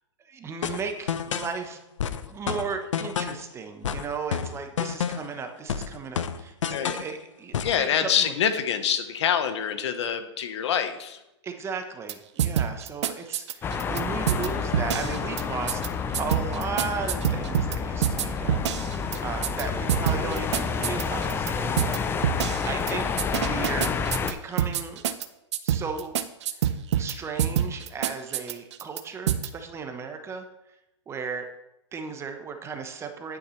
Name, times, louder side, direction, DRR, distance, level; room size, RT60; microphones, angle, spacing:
voice 1, 0.2-1.8 2.2-8.3 11.4-15.8 16.2-22.0 22.3-23.1 23.3-24.0 24.3-25.0 25.6-26.1 26.5-30.5 31.1-31.5 31.9-33.4, right 5 dB, 15° right, 6 dB, 0.9 m, -35 dB
sound 1, 0.6-1.6 2.0-3.5 3.8-5.4 5.7-7.1 7.5-7.8, left 8 dB, 85° left, 0.7 m, -30 dB
voice 2, 7.6-11.2, left 8 dB, 70° left, 9 dB, 1.1 m, -26 dB
sound 2, 12.1-12.2 12.4-14.0 14.3-14.5 14.7-15.4 15.7-15.9 16.1-17.8 18.0-19.6 19.9-21.5 21.8-22.0 22.2-22.9 23.2-25.3 25.5-27.1 27.4-29.0 29.3-29.5, right 10 dB, 70° right, 0.7 m, -25 dB
sound 3, 13.6-24.3, left 5 dB, 15° left, 0.5 m, -29 dB
9.7 x 8.7 x 3.2 m, 0.90 s
hypercardioid pair, 135°, 15 cm